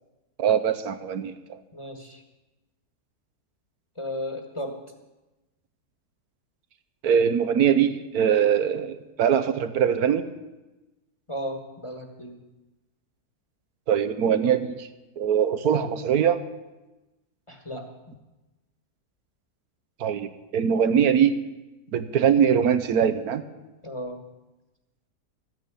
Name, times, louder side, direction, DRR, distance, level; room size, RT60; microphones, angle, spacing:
voice 1, 0.4-1.6 7.0-10.3 13.9-14.9 15.2-16.4 20.0-21.3 21.9-23.4, right 8 dB, 75° right, 10 dB, 1.3 m, -22 dB
voice 2, 1.7-2.2 4.0-4.8 11.3-12.4 17.5-17.9 23.8-24.2, equal, 20° left, 5 dB, 1.3 m, -34 dB
14.0 x 9.2 x 8.3 m, 1.1 s
omnidirectional pair, 1.7 m